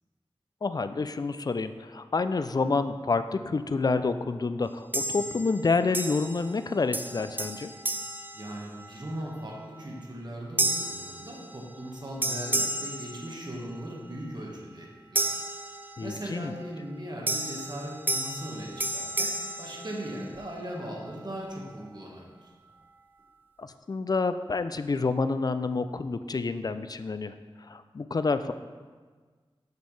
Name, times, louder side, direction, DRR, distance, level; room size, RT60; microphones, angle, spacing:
voice 1, 0.6-7.7 16.0-16.5 23.6-28.5, left 4 dB, 40° left, 11 dB, 0.3 m, -28 dB
sound 1, 4.9-5.6 5.9-6.6 6.9-9.1 9.6-9.9 10.6-11.9 12.2-13.8 15.1-16.3 17.3-20.5, right 1 dB, 20° right, 0.4 m, -32 dB
voice 2, 8.3-15.2 16.0-19.3 19.6-22.5, right 1 dB, 50° right, -2 dB, 1.5 m, -38 dB
6.7 x 6.2 x 3.2 m, 1.5 s
wide cardioid pair, 55°, 10 cm